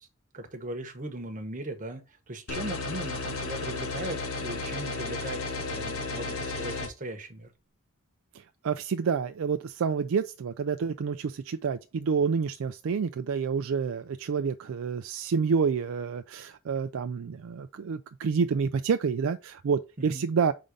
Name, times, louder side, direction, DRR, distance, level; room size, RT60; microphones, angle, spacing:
voice 1, 0.3-7.5 20.0-20.3, right 1 dB, 40° right, 1.2 m, -38 dB
sound 1, 2.5-6.9, left 3 dB, 75° left, 1.5 m, -33 dB
voice 2, 8.6-20.5, right 6 dB, 65° right, 0.4 m, -28 dB
5.1 x 3.8 x 5.3 m
head